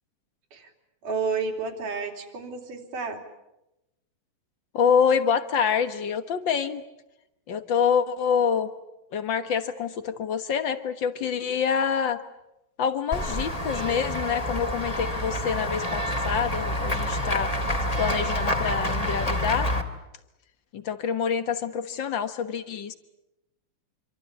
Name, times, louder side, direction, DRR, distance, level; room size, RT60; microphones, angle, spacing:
voice 1, 1.0-3.2, right 5 dB, 65° right, 5 dB, 4.5 m, -31 dB
voice 2, 4.7-6.8 7.5-8.7 9.1-12.2 12.8-17.5 18.0-19.7 20.7-22.9, left 7 dB, 65° left, 10 dB, 1.2 m, -26 dB
Run / Walk footsteps / Bell, 13.1-19.8, left 1 dB, 10° left, 2.0 m, -28 dB
27.0 x 25.5 x 8.5 m, 0.91 s
omnidirectional pair, 4.1 m